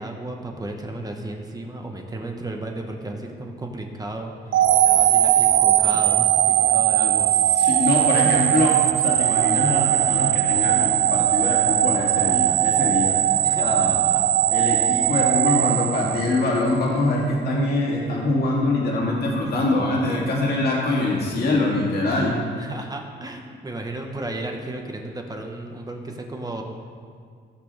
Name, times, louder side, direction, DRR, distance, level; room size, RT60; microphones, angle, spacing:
voice 1, 0.0-6.3 6.6-7.3 13.4-14.2 14.6-15.0 22.6-26.6, right 2 dB, 20° right, 2 dB, 1.3 m, -34 dB
sound 1, 4.5-16.7, right 12 dB, 70° right, 0.4 m, -19 dB
voice 2, 7.5-13.2 13.6-14.1 14.5-22.4, left 2 dB, 50° left, -4 dB, 2.4 m, -24 dB
16.0 x 6.0 x 3.5 m, 2.1 s
cardioid pair, 90°, 20 cm